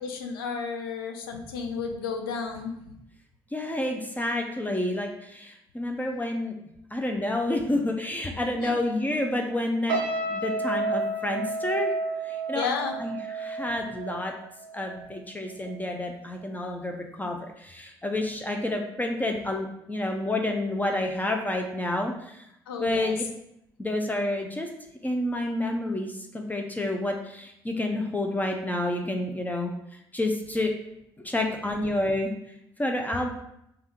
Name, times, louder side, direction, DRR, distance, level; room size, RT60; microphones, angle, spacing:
voice 1, 0.0-2.8 8.6-8.8 12.5-13.0 22.7-23.1, left 5 dB, 75° left, 4 dB, 0.4 m, -32 dB
voice 2, 3.5-6.6 6.9-10.0 10.3-11.9 12.2-12.7 13.0-14.3 14.7-22.4 22.8-23.2 23.8-24.7 25.0-29.7 30.1-30.7 31.2-32.3 32.8-33.3, left 1 dB, 15° left, 2 dB, 0.5 m, -29 dB
sound 1, 9.9-15.2 15.5-15.8, right 3 dB, 75° right, 0.5 m, -31 dB
3.4 x 2.4 x 4.4 m, 0.79 s
figure-of-eight pair, 45°, 12 cm